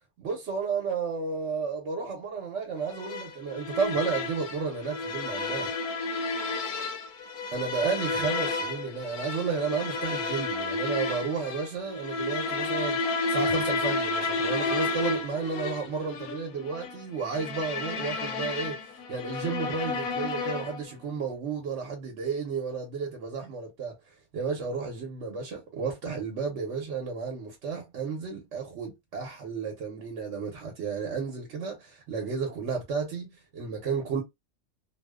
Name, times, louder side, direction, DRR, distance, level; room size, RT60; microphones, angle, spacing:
voice 1, 0.2-5.7 7.5-13.0 13.3-18.8 19.1-23.9 24.3-34.2, right 5 dB, 60° right, 0.9 m, -32 dB
sound 1, 2.9-20.9, left 3 dB, 85° left, 1.0 m, -32 dB
2.7 x 2.1 x 2.2 m
omnidirectional pair, 1.5 m